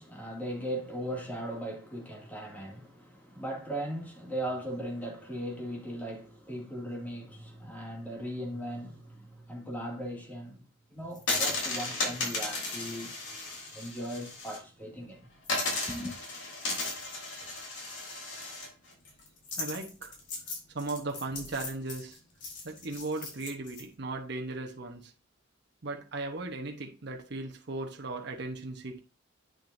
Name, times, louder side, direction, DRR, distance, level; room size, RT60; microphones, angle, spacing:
voice 1, 0.0-10.6 10.9-13.1 13.7-15.3 15.9-16.2, equal, 10° left, 2.3 m, -38 dB
sound 1, 11.1-14.6 14.9-15.0 15.4-23.8, left 2 dB, 70° left, 3.4 m, -35 dB
voice 2, 19.6-20.1 20.7-22.2 22.6-25.1 25.8-29.0, right 2 dB, 60° right, 1.0 m, -37 dB
8.7 x 6.3 x 2.7 m
head